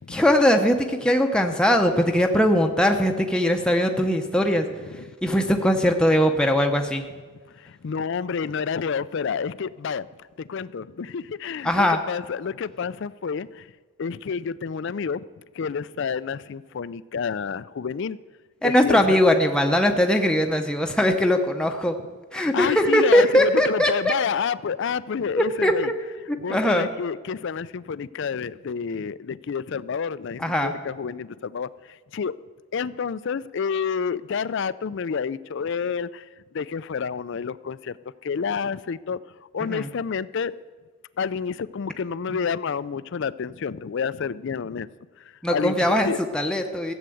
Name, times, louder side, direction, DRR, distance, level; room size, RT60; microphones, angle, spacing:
voice 1, 0.1-4.7 5.2-7.0 11.6-12.0 18.6-22.0 22.3-24.1 25.3-25.9 26.3-26.9 30.4-30.7 39.6-39.9 42.3-42.4 45.4-46.9, equal, 5° left, 3 dB, 0.7 m, -20 dB
voice 2, 7.8-10.1 10.5-13.5 14.0-15.2 15.6-18.2 18.6-19.2 22.4-25.9 26.4-31.7 32.1-32.3 32.7-36.2 36.5-37.9 38.2-39.2 39.5-40.5 41.2-44.9 45.5-45.7 46.0-46.2, left 6 dB, 55° left, 18 dB, 0.4 m, -29 dB
15.0 x 8.0 x 7.7 m, 1.5 s
head